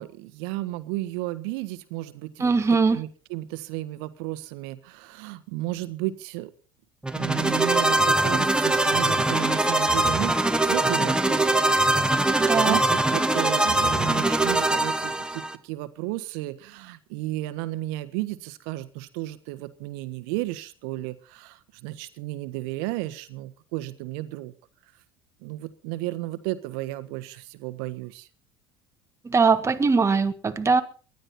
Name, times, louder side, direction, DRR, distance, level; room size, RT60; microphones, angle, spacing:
voice 1, 0.0-2.5 2.9-6.5 7.1-24.5 25.4-28.3, right 17 dB, 70° right, 1.4 m, -33 dB
voice 2, 2.4-3.0 12.4-12.8 29.2-30.8, right 4 dB, 25° right, 1.7 m, -21 dB
sound 1, 7.0-15.5, right 2 dB, 5° right, 1.5 m, -22 dB
19.5 x 12.0 x 4.3 m
hypercardioid pair, 75°, 13 cm